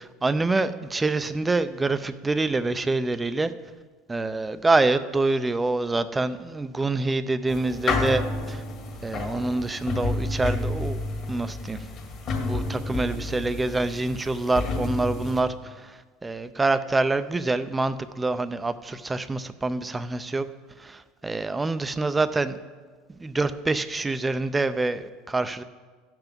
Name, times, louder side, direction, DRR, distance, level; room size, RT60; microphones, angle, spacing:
voice 1, 0.0-3.5 4.1-8.6 9.0-11.0 11.3-11.8 12.4-20.5 20.8-22.6 23.2-25.6, right 3 dB, 15° right, 12 dB, 0.5 m, -26 dB
sound 1, 7.5-15.4, left 3 dB, 45° left, 1.8 m, -30 dB
14.5 x 5.9 x 5.2 m, 1.5 s
supercardioid pair, 120°, 0 cm